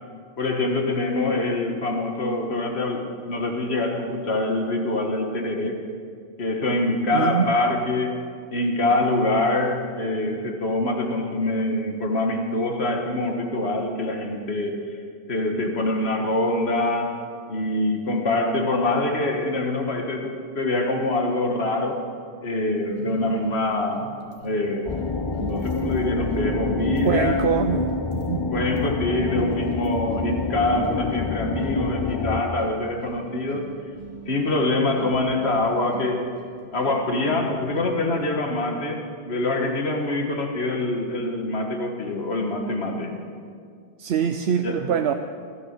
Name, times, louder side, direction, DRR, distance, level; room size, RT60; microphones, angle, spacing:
voice 1, 0.4-5.8 6.4-8.2 8.5-15.0 15.3-17.2 17.5-22.0 22.4-24.2 24.4-25.0 25.4-27.5 28.5-33.7 34.3-36.3 36.7-43.2 44.6-44.8, left 2 dB, 85° left, 3 dB, 1.8 m, -25 dB
voice 2, 7.1-7.5 27.0-28.5 44.0-45.1, right 8 dB, 85° right, 7 dB, 0.9 m, -24 dB
sound 1, 22.9-38.4, right 3 dB, 45° right, 1.8 m, -41 dB
sound 2, 24.8-32.4, left 3 dB, 30° left, 0.6 m, -27 dB
15.0 x 12.5 x 6.6 m, 2.2 s
omnidirectional pair, 1.0 m